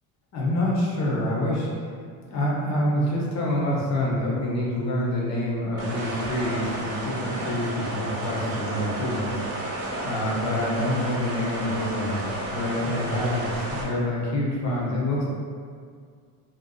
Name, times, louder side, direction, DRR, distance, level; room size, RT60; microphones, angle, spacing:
voice 1, 0.3-1.7 2.3-9.8 10.0-15.2, left 1 dB, 40° left, -4 dB, 0.7 m, -27 dB
sound 1, 5.8-13.8, right 1 dB, 35° right, 0.5 m, -32 dB
2.6 x 2.3 x 2.3 m, 2.1 s
cardioid pair, 110°, 40 cm